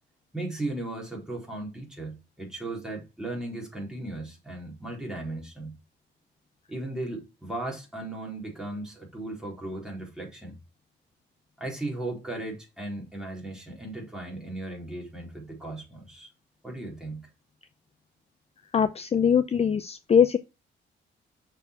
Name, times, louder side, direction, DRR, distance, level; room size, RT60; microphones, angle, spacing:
voice 1, 0.3-5.7 6.7-10.6 11.6-16.3 16.6-17.3, right 2 dB, 5° right, 3.8 m, -36 dB
voice 2, 18.7-20.4, left 7 dB, 30° left, 0.5 m, -22 dB
6.6 x 4.6 x 4.5 m
cardioid pair, 90°, 20 cm